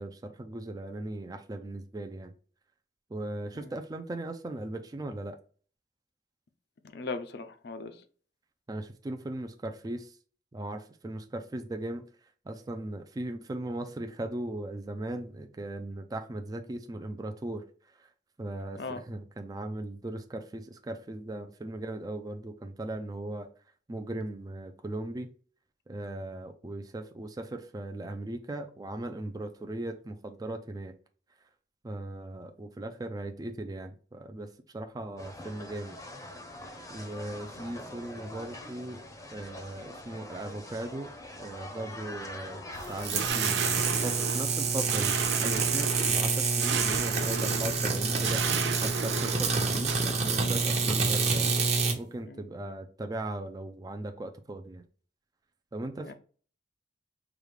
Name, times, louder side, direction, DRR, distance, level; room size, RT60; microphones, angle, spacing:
voice 1, 0.0-2.3 3.1-5.4 8.7-10.1 10.5-12.0 12.5-17.6 18.0-18.1 18.4-23.5 23.9-25.3 25.9-30.9 31.8-36.0 36.9-39.0 39.3-41.1 41.4-42.6 42.9-45.1 45.4-48.4 48.8-51.6 52.0-54.8 55.7-56.1, right 1 dB, 20° right, 0.4 m, -38 dB
voice 2, 6.9-7.9 18.8-19.0 52.2-52.4 56.0-56.1, left 3 dB, 60° left, 0.5 m, -38 dB
sound 1, 35.2-43.3, left 1 dB, 20° left, 0.7 m, -44 dB
sound 2, 42.7-50.0, right 6 dB, 75° right, 0.5 m, -35 dB
sound 3, 43.0-52.0, right 4 dB, 35° right, 0.8 m, -27 dB
5.0 x 2.4 x 3.2 m
head